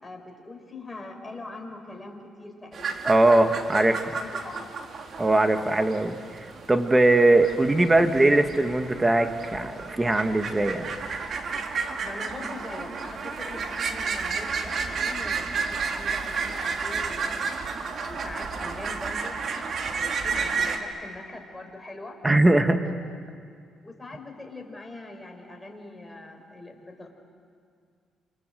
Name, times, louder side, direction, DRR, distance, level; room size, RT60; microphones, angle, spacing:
voice 1, 0.0-3.1 4.1-4.7 12.0-19.4 19.8-22.2 22.8-22.9 23.8-27.1, left 2 dB, 15° left, 3 dB, 5.1 m, -42 dB
sound 1, 2.7-20.8, right 5 dB, 55° right, 2.3 m, -32 dB
voice 2, 3.1-4.1 5.2-6.2 6.7-10.9 22.2-22.8, right 2 dB, 15° right, 7 dB, 1.9 m, -20 dB
28.5 x 26.5 x 7.8 m, 2.2 s
cardioid pair, 90°, 0 cm